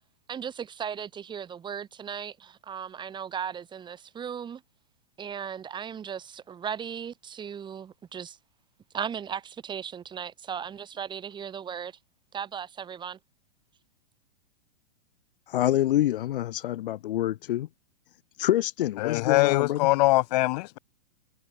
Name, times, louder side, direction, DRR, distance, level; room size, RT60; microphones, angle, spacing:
voice 1, 0.3-4.6 5.2-8.4 8.9-12.0 12.3-13.2, right 8 dB, 15° right, 7.6 m, -36 dB
voice 2, 15.5-17.7 18.4-19.9, left 13 dB, 65° left, 1.1 m, -26 dB
voice 3, 19.0-20.8, left 21 dB, 45° left, 2.0 m, -23 dB
hypercardioid pair, 155°, 30 cm